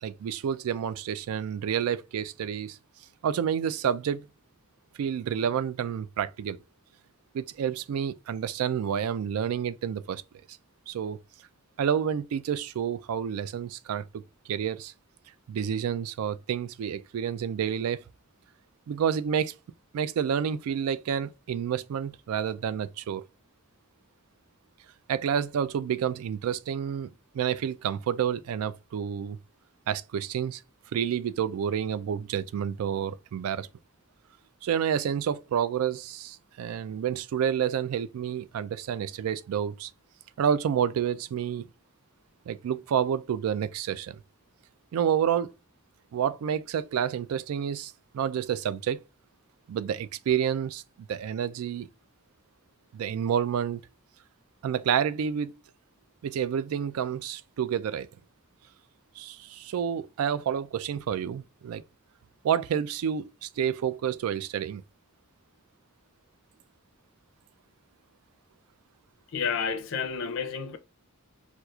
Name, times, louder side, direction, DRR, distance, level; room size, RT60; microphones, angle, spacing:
voice 1, 0.0-2.8 3.2-4.2 5.0-6.6 7.3-10.2 10.9-11.2 11.8-14.2 14.5-14.9 15.5-18.0 18.9-19.5 19.9-23.2 25.1-27.1 27.3-29.4 29.9-30.6 30.9-33.7 34.6-39.9 40.4-41.7 42.5-44.2 44.9-45.5 46.1-49.0 49.7-50.8 51.1-51.9 52.9-53.8 54.6-55.5 56.2-58.1 59.2-61.8 62.4-64.8, right 8 dB, 90° right, 0.3 m, -29 dB
voice 2, 69.3-70.8, left 6 dB, 60° left, 0.5 m, -30 dB
4.4 x 2.4 x 2.3 m
head